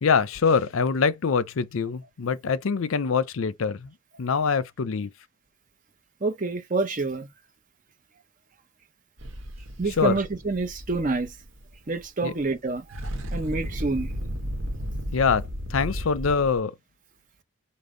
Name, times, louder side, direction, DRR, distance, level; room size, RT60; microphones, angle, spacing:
voice 1, 0.0-3.9 4.2-5.1 10.0-10.2 12.2-12.3 15.1-16.7, left 5 dB, 70° left, 0.5 m, -24 dB
voice 2, 6.2-7.3 9.8-11.3 11.9-13.0 13.3-14.1, right 3 dB, 35° right, 0.7 m, -27 dB
sound 1, 9.2-12.1 12.4-12.5 12.8-16.6, equal, 70° right, 0.9 m, -34 dB
5.2 x 2.1 x 3.8 m
head